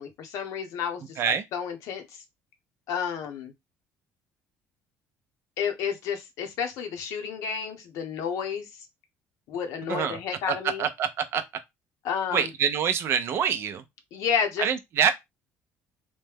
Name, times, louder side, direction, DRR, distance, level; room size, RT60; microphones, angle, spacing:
voice 1, 0.0-2.1 2.9-3.5 5.6-8.7 9.5-10.8 12.0-12.5 14.1-14.7, left 7 dB, 75° left, 0.8 m, -31 dB
voice 2, 10.5-11.4 12.3-13.8 14.6-15.1, right 8 dB, 50° right, 0.5 m, -25 dB
3.1 x 2.2 x 3.4 m
cardioid pair, 140°, 6 cm